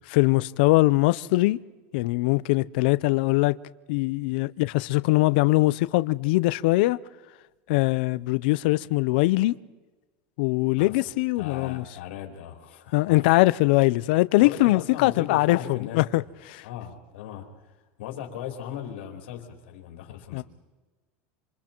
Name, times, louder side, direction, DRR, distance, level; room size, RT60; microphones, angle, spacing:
voice 1, 0.1-1.6 1.9-3.6 3.9-7.0 7.7-9.5 10.4-11.8 12.9-16.2 16.5-16.6 20.3-20.4, left 20 dB, 60° left, 0.6 m, -22 dB
voice 2, 11.4-13.3 14.4-16.3 16.6-20.4, left 10 dB, 90° left, 4.4 m, -38 dB
27.5 x 27.0 x 4.5 m
supercardioid pair, 180°, 6 cm